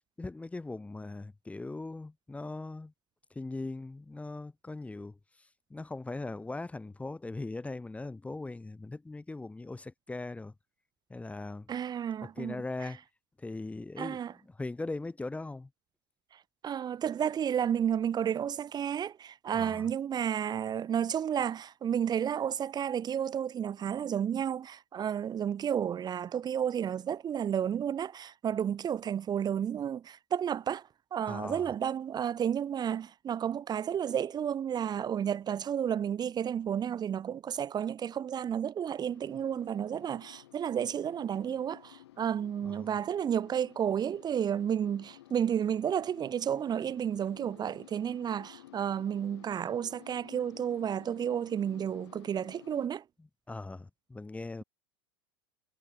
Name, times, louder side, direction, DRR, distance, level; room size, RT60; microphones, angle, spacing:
voice 1, 0.2-2.9 3.3-5.2 5.7-10.5 11.1-11.7 12.4-13.0 13.4-14.2 14.5-15.7 19.5-19.9 31.3-31.7 42.6-42.8 53.5-54.6, left 2 dB, 10° left, 1.4 m, -39 dB
voice 2, 11.7-12.6 14.0-14.3 16.6-53.0, right 9 dB, 30° right, 1.3 m, -32 dB
sound 1, 39.0-52.9, left 14 dB, 75° left, 5.5 m, -55 dB
hypercardioid pair, 95°, 14 cm